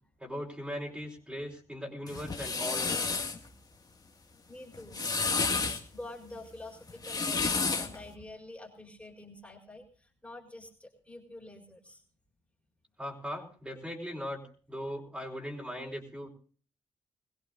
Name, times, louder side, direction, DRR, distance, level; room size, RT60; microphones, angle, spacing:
voice 1, 0.2-3.0 13.0-16.3, equal, 10° right, 0 dB, 4.6 m, -39 dB
sound 1, 2.1-3.4 4.7-5.8 6.9-8.0, left 4 dB, 35° left, 2.0 m, -30 dB
voice 2, 4.4-12.0, left 2 dB, 10° left, 1 dB, 4.4 m, -48 dB
22.5 x 16.0 x 2.6 m, 0.41 s
cardioid pair, 70°, 11 cm